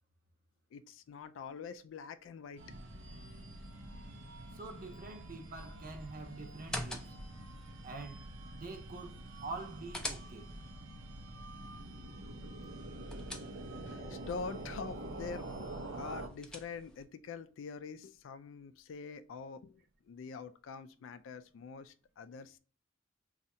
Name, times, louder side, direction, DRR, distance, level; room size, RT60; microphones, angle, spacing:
voice 1, 0.7-2.7 3.4-3.5 13.9-15.5 16.0-22.6, left 5 dB, 75° left, 0.3 m, -45 dB
sound 1, 2.6-16.3, right 1 dB, 85° right, 0.6 m, -46 dB
voice 2, 4.5-7.1 7.8-8.2 8.5-9.2 9.4-10.5, right 3 dB, 45° right, 0.6 m, -45 dB
sound 2, 6.5-7.4 9.4-10.7 12.7-13.9 15.9-17.0, left 1 dB, 5° left, 0.4 m, -45 dB
2.7 x 2.4 x 4.1 m
head